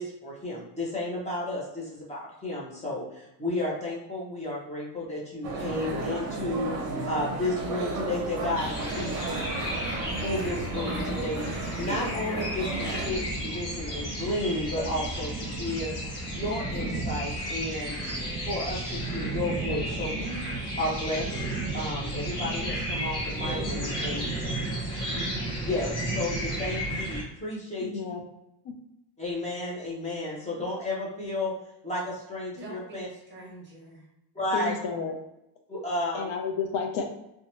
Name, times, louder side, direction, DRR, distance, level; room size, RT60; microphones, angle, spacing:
voice 1, 0.0-6.7 7.1-8.7 8.9-11.5 11.8-15.9 16.3-18.0 18.4-21.4 21.7-24.3 25.7-27.9 29.2-31.5 31.8-33.1 34.3-34.7 35.7-36.3, left 1 dB, 15° left, -5 dB, 0.7 m, -32 dB
sound 1, 5.4-13.1, right 2 dB, 50° right, 0.7 m, -33 dB
sound 2, 8.6-27.2, right 1 dB, 40° left, 0.9 m, -32 dB
voice 2, 23.2-24.2 32.6-34.1, right 2 dB, 25° right, -4 dB, 1.0 m, -44 dB
voice 3, 27.8-28.2 34.5-35.1 36.1-37.0, left 5 dB, 65° left, 3 dB, 0.6 m, -31 dB
2.7 x 2.2 x 2.8 m, 0.85 s
cardioid pair, 145°, 47 cm